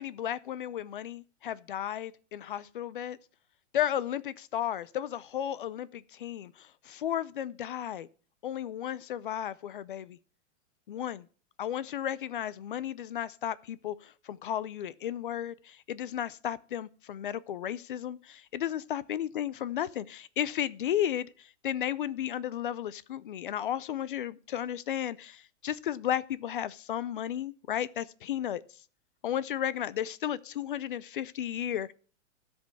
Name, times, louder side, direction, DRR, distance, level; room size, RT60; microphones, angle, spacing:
voice 1, 0.0-3.2 3.7-8.1 8.4-10.2 10.9-11.3 11.6-28.6 29.2-31.9, left 10 dB, 45° left, 0.4 m, -34 dB
13.5 x 5.3 x 6.8 m
hypercardioid pair, 175°, 36 cm